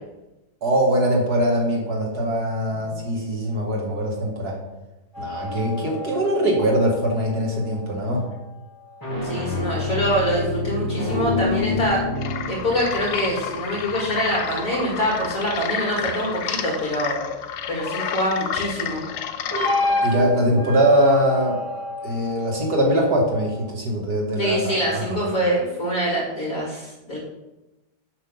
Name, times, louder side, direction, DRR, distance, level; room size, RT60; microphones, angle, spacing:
voice 1, 0.6-4.6 5.2-8.3 20.0-21.6 22.0-25.1, right 1 dB, 70° right, -1 dB, 2.5 m, -22 dB
sound 1, 5.1-7.8 8.8-15.7 19.5-23.7, left 2 dB, 10° left, 3.3 m, -29 dB
voice 2, 9.2-12.0 12.5-17.2 17.7-19.0 24.4-27.2, equal, 55° left, -4 dB, 2.5 m, -25 dB
sound 2, 12.2-20.1, left 8 dB, 75° left, 1.3 m, -30 dB
8.4 x 5.8 x 5.6 m, 0.99 s
omnidirectional pair, 1.8 m